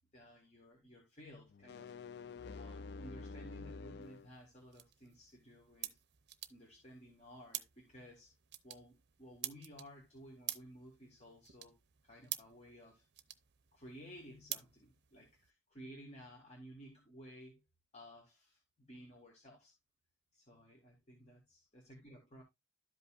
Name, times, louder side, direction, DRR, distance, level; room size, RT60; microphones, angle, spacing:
voice 1, 0.1-1.9 2.6-5.9 6.5-8.3 8.6-11.8 12.0-13.0 13.7-17.6 17.9-19.7 20.3-22.4, equal, 30° left, 1.7 m, -56 dB
sound 1, 1.5-4.3, left 4 dB, 50° left, 0.4 m, -48 dB
sound 2, 4.0-15.5, right 14 dB, 55° right, 0.6 m, -49 dB
12.5 x 5.4 x 2.5 m
head